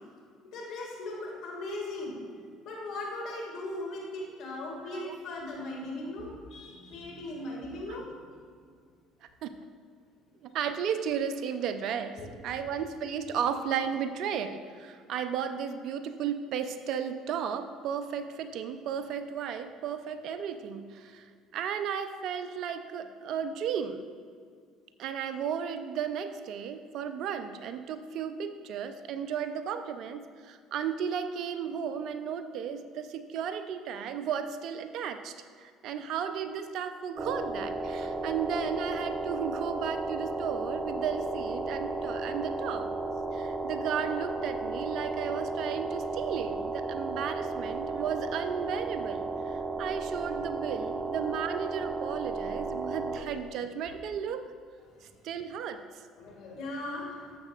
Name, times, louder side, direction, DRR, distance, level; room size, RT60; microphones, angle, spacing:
voice 1, 0.5-2.4 2.6-8.1 12.2-12.3 50.9-51.3 53.4-53.6 53.9-54.0 56.2-57.3, left 2 dB, 65° left, -2 dB, 2.1 m, -38 dB
voice 2, 10.4-12.2 12.4-21.2 21.5-24.1 25.0-42.9 43.3-54.4 55.2-55.8, right 7 dB, 65° right, 9 dB, 0.6 m, -34 dB
sound 1, 37.2-53.2, right 3 dB, 30° right, 1.1 m, -34 dB
12.0 x 7.6 x 2.5 m, 2.1 s
hypercardioid pair, 70°, 0 cm